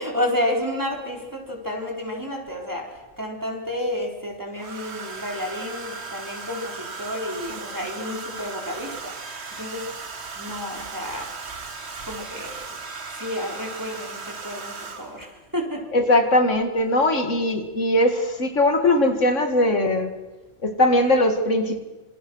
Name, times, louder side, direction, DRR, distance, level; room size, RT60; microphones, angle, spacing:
voice 1, 0.0-9.9 10.3-11.5 12.1-12.7 13.1-15.9, left 1 dB, 15° right, 0 dB, 4.2 m, -31 dB
Domestic sounds home sounds, 0.9-1.0 2.5-3.1 4.5-15.3 16.5-16.8 17.1-17.4, right 4 dB, 60° right, 1.7 m, -37 dB
voice 2, 15.9-20.1 20.6-21.8, left 1 dB, 80° left, 7 dB, 2.4 m, -20 dB
26.5 x 26.0 x 6.3 m, 1.2 s
omnidirectional pair, 1.3 m